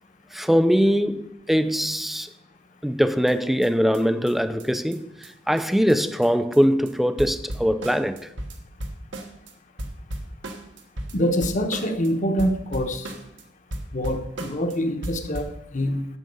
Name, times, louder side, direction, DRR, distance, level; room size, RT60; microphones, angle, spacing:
voice 1, 0.3-2.3 2.8-8.3, equal, ahead, 0.5 m, -22 dB
sound 1, 3.3-3.4 3.6-3.7 3.9-4.0 4.3-4.4 4.6-4.7 4.9-5.0 5.2-5.3 5.6-5.7 5.9-6.0 6.2-6.6 6.9-7.0 7.2-9.5 9.8-12.1 12.4-13.4 13.7-14.8 15.0-15.6, right 1 dB, 80° right, 1.4 m, -35 dB
voice 2, 11.1-13.1 13.9-16.1, equal, 45° left, 1.1 m, -25 dB
11.0 x 8.0 x 5.4 m
head